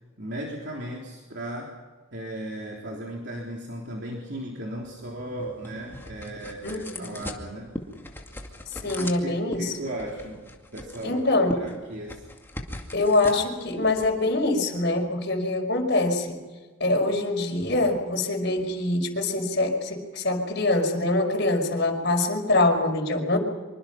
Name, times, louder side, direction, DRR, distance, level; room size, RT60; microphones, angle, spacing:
voice 1, 0.2-1.7 2.1-7.7 8.8-11.2 11.6-12.3, right 1 dB, 60° right, -2 dB, 3.6 m, -36 dB
sound 1, 4.8-15.0, left 1 dB, 10° left, 2.3 m, -40 dB
voice 2, 6.6-7.2 8.8-9.7 11.0-11.5 12.9-16.4 16.8-23.4, left 2 dB, 55° left, 1 dB, 5.3 m, -24 dB
25.5 x 24.5 x 6.0 m, 1.4 s
head